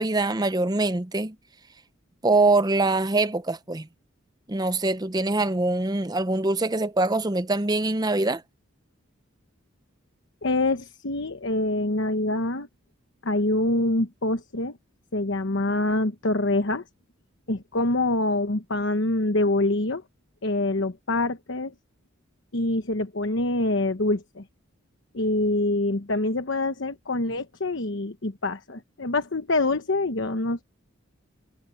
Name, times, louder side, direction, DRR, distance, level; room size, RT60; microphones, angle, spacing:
voice 1, 0.0-1.4 2.2-3.9 4.5-8.4, right 2 dB, 20° right, 0.7 m, -23 dB
voice 2, 10.4-12.7 13.2-14.8 15.1-16.8 17.5-20.0 20.4-21.7 22.5-24.4 25.1-30.6, left 2 dB, 60° left, 1.1 m, -25 dB
head